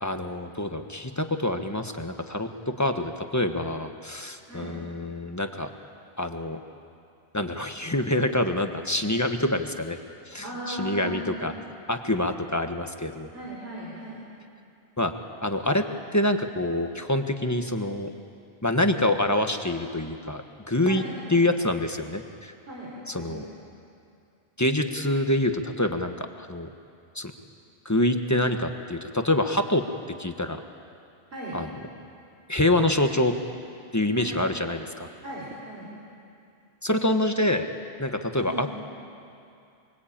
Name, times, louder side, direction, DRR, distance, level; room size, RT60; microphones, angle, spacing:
voice 1, 0.0-5.7 6.2-6.6 7.3-10.0 10.3-11.5 11.9-13.3 15.0-15.1 15.4-15.8 16.1-18.1 18.6-21.0 21.3-22.5 23.1-23.4 24.6-26.7 27.1-27.3 27.8-29.8 30.2-30.6 31.5-31.7 32.5-33.3 33.9-35.1 36.8-37.7 38.0-38.7, left 1 dB, 15° left, 6 dB, 1.3 m, -26 dB
voice 2, 10.4-11.5 13.3-14.2 20.8-21.4 22.7-23.4 31.3-31.6 34.1-34.8 35.2-35.9 38.4-38.7, right 1 dB, 85° right, -5 dB, 5.3 m, -38 dB
24.0 x 23.5 x 8.8 m, 2.5 s
omnidirectional pair, 1.0 m